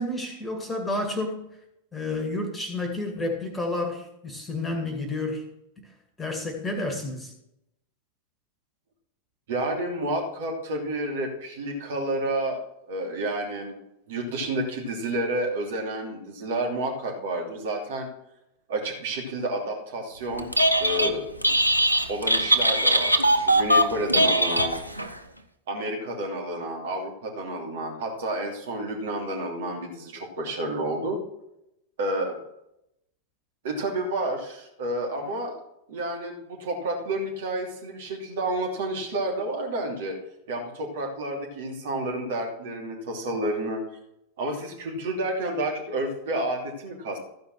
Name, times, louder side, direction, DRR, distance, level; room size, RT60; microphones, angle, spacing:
voice 1, 0.0-1.5 1.9-5.4 5.8-5.9 6.2-7.3, left 2 dB, 10° left, 4 dB, 2.1 m, -30 dB
voice 2, 9.5-12.6 12.9-13.8 14.1-18.1 18.7-20.5 20.8-21.3 22.1-24.7 25.7-31.2 32.0-32.4 33.6-35.5 35.9-40.2 40.5-43.8 44.4-47.2, right 1 dB, 55° right, 1 dB, 2.9 m, -30 dB
Telephone, 20.4-21.1 21.4-25.1, right 1 dB, 90° left, 0.8 m, -21 dB
14.0 x 5.2 x 6.3 m, 0.82 s
figure-of-eight pair, 90°, 0 cm